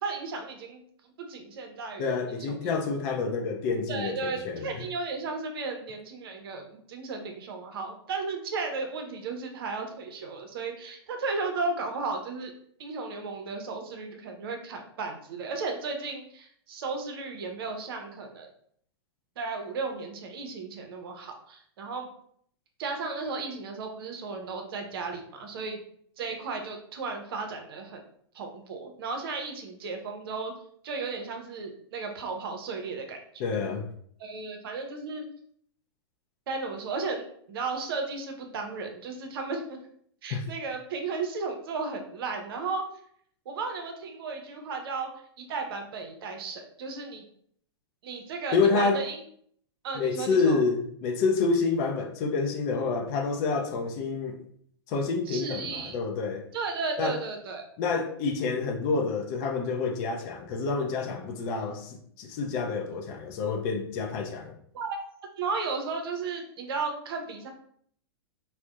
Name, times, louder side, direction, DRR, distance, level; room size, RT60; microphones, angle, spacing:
voice 1, 0.0-0.8 1.2-2.7 3.9-6.6 6.9-12.5 12.8-18.5 19.4-22.1 22.8-25.8 26.2-28.0 28.3-30.5 30.8-33.2 34.2-35.3 36.5-39.8 40.2-42.8 43.5-45.1 45.4-47.2 48.0-49.2 49.8-50.6 55.3-56.0 56.5-57.7 64.7-65.0 65.4-67.5, right 4 dB, 60° right, 0.6 m, -34 dB
voice 2, 2.0-4.8 33.4-33.8 40.3-40.5 48.5-49.0 49.9-54.4 54.9-56.4 57.0-57.2 57.8-64.6, left 4 dB, 40° left, 0.4 m, -28 dB
2.5 x 2.1 x 2.3 m
hypercardioid pair, 110°, 14 cm